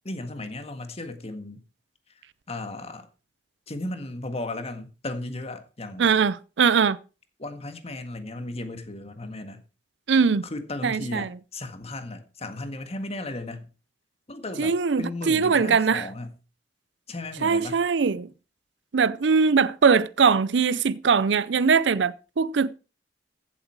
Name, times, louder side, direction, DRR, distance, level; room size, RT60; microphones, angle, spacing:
voice 1, 0.0-1.6 2.5-3.1 3.7-6.1 7.4-9.6 10.4-13.7 14.3-16.4 17.1-17.8, left 2 dB, 35° left, 1.7 m, -35 dB
voice 2, 6.0-7.0 10.1-10.4 10.8-11.3 14.6-16.1 17.4-18.3 18.9-22.7, right 5 dB, 75° right, 0.5 m, -21 dB
15.0 x 7.7 x 4.7 m
head